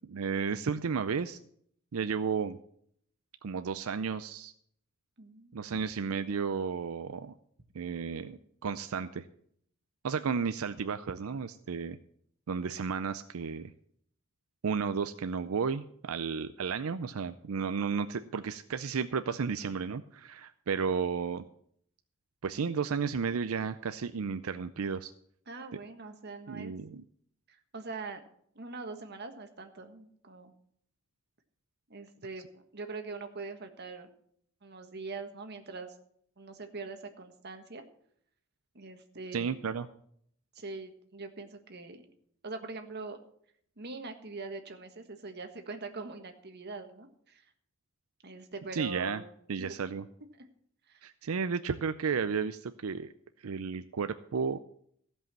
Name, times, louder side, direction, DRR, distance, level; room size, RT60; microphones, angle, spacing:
voice 1, 0.0-1.4 1.9-2.6 3.4-4.5 5.5-7.3 7.7-9.3 10.0-12.0 12.5-13.7 14.6-21.4 22.4-25.1 26.5-27.0 39.3-39.9 48.7-49.2 49.5-50.1 51.0-53.1 53.4-54.6, right 5 dB, 90° right, 11 dB, 0.5 m, -33 dB
voice 2, 5.2-5.8 10.2-10.3 25.5-26.8 27.5-28.2 28.5-30.5 31.9-34.1 34.6-35.9 36.4-37.8 38.7-39.6 40.5-42.0 42.4-43.2 43.8-47.4 48.2-49.3 49.6-49.7 50.4-50.5 50.9-51.1, right 3 dB, 50° right, 6 dB, 1.5 m, -43 dB
15.5 x 5.5 x 7.4 m, 0.66 s
head